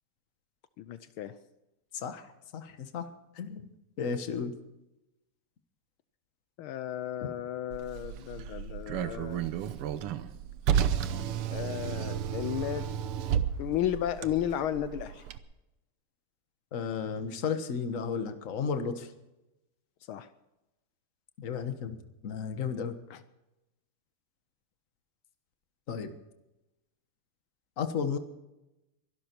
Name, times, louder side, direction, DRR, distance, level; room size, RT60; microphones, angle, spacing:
voice 1, 0.8-1.3 6.6-9.5 11.5-12.9 13.6-15.2 20.1-20.3 23.1-23.2, left 11 dB, 75° left, 13 dB, 1.5 m, -34 dB
voice 2, 1.9-3.1 3.3-3.7 4.0-4.5 16.7-19.1 21.4-23.0 25.9-26.1 27.8-28.2, left 6 dB, 40° left, 8 dB, 1.5 m, -33 dB
Car, 7.7-15.4, right 9 dB, 85° right, 1.8 m, -32 dB
23.5 x 12.0 x 4.5 m, 0.95 s
omnidirectional pair, 2.4 m